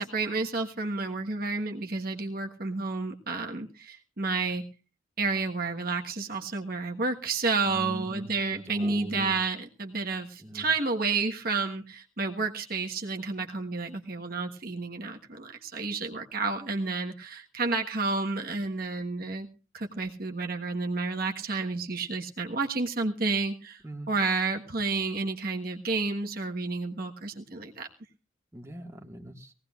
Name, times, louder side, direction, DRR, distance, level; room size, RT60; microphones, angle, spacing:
voice 1, 0.0-4.6 5.2-19.5 19.7-23.8 24.1-27.9, right 3 dB, 45° right, 3 dB, 1.4 m, -30 dB
voice 2, 7.7-9.3 10.4-10.7 23.8-24.1 28.5-29.5, equal, 15° right, 2 dB, 1.7 m, -41 dB
20.0 x 17.5 x 2.4 m, 0.33 s
head